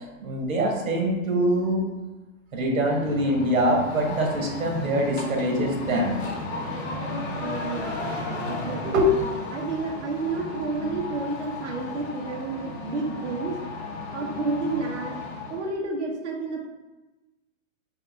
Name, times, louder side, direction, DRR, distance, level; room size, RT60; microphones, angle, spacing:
voice 1, 0.0-1.9 2.5-6.3 8.8-9.1, equal, 80° right, 0 dB, 1.3 m, -24 dB
sound 1, 2.8-15.7, left 2 dB, 50° left, 0.9 m, -34 dB
voice 2, 7.2-9.1 9.5-13.5 14.1-15.2 15.5-16.6, right 3 dB, 60° right, 0 dB, 0.9 m, -31 dB
4.7 x 2.6 x 3.3 m, 1.1 s
hypercardioid pair, 180°, 41 cm